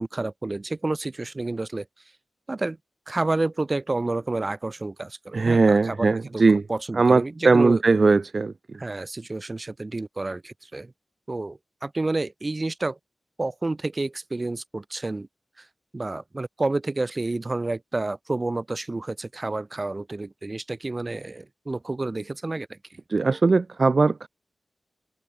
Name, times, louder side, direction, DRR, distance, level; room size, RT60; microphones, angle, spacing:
voice 1, 0.0-1.9 2.5-2.8 3.1-6.4 6.7-7.8 8.8-10.9 11.3-13.0 13.4-15.3 15.6-15.7 15.9-22.8, right 2 dB, 25° right, 2.2 m, -29 dB
voice 2, 5.3-6.6 6.9-8.5 23.1-24.3, right 3 dB, 45° right, 0.9 m, -19 dB
wide cardioid pair, 110°, 0 cm